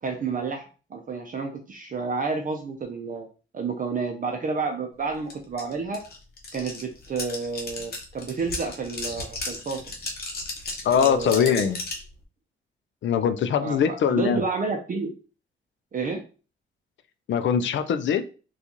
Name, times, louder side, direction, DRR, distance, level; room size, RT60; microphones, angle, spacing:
voice 1, 0.0-0.6 0.9-3.3 3.5-6.0 6.5-9.8 10.9-11.7 13.6-15.1 15.9-16.2, right 4 dB, 40° right, 4 dB, 0.5 m, -30 dB
sound 1, 5.3-5.4 5.6-12.1, left 2 dB, 45° left, 0.9 m, -34 dB
voice 2, 10.8-11.8 13.0-14.4 17.3-18.3, left 7 dB, 60° left, 10 dB, 0.4 m, -22 dB
3.8 x 2.4 x 2.9 m, 0.35 s
cardioid pair, 100°, 21 cm